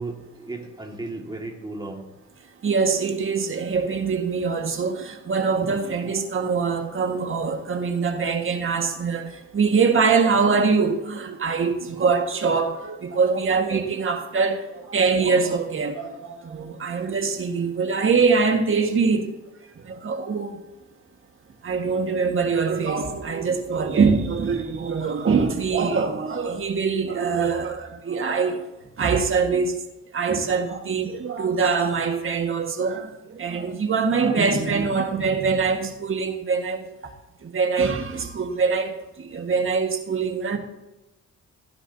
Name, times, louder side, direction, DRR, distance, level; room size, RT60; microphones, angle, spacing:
voice 1, 0.0-2.0 11.9-12.0, right 2 dB, 15° right, 1.9 m, -35 dB
voice 2, 2.6-14.6 14.9-19.3 19.9-20.6 21.6-28.6 29.0-29.8 30.1-36.8 37.4-38.9 39.3-40.6, right 5 dB, 45° right, 1.7 m, -23 dB
16.5 x 9.8 x 2.8 m
cardioid pair, 90°, 30 cm